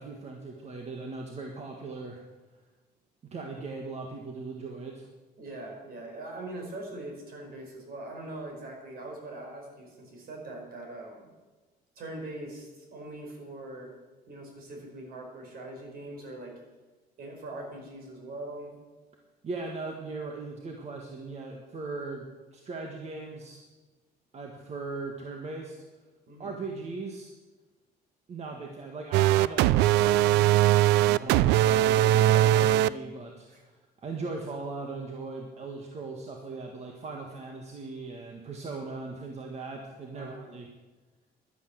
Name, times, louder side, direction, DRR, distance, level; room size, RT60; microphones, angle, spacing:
voice 1, 0.0-2.2 3.3-5.1 19.4-22.2 22.5-23.6 24.3-25.8 26.4-27.3 28.3-33.7 34.0-40.7, right 3 dB, 40° right, 1 dB, 1.8 m, -39 dB
voice 2, 5.4-11.3 11.9-13.9 14.3-16.5 17.2-18.7 26.3-26.6 31.2-31.6 33.5-33.6 40.1-40.6, right 2 dB, 65° right, 2 dB, 4.9 m, -42 dB
sound 1, 29.1-32.9, right 13 dB, 90° right, 0.4 m, -21 dB
11.5 x 11.0 x 7.9 m, 1.2 s
cardioid pair, 110°, 17 cm